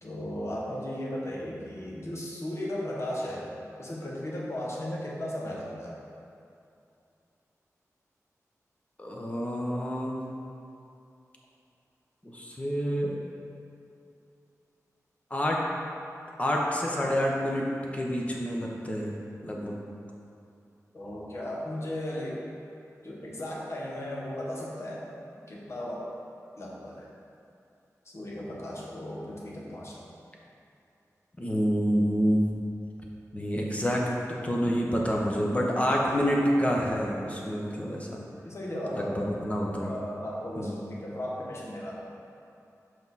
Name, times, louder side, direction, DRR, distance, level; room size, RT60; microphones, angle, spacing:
voice 1, 0.0-3.5 3.8-6.0 20.9-22.4 23.0-25.0 25.5-26.1 26.6-27.1 28.0-30.1 38.4-39.4 39.8-42.1, left 1 dB, 50° left, -4 dB, 1.3 m, -36 dB
voice 2, 9.0-10.2 12.2-13.1 15.3-15.6 16.4-17.6 17.9-19.2 19.4-19.8 31.4-32.4 33.3-34.1 34.4-38.2 38.9-39.9 40.6-40.8, equal, 25° left, -2 dB, 1.0 m, -28 dB
6.0 x 5.2 x 4.1 m, 2.6 s
wide cardioid pair, 80°, 6 cm